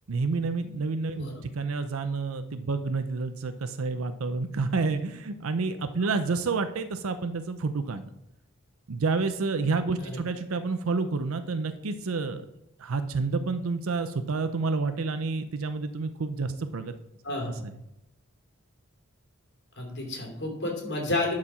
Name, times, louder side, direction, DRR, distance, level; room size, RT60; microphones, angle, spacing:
voice 1, 0.1-8.0 8.9-12.5 12.8-16.9, right 4 dB, 75° right, 10 dB, 0.6 m, -29 dB
voice 2, 17.2-17.6 19.8-21.3, left 2 dB, 50° left, 0 dB, 2.9 m, -31 dB
11.0 x 4.9 x 5.6 m, 0.87 s
head